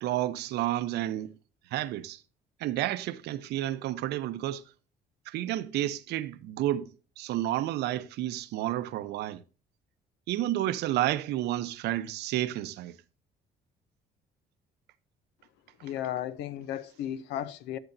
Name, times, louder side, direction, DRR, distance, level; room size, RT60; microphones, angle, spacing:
voice 1, 0.0-1.3 1.7-2.2 2.6-4.6 5.3-9.4 10.3-12.9, right 14 dB, 80° right, 0.8 m, -31 dB
voice 2, 15.8-17.8, left 11 dB, 90° left, 0.8 m, -34 dB
13.0 x 6.9 x 2.7 m
cardioid pair, 110°, 17 cm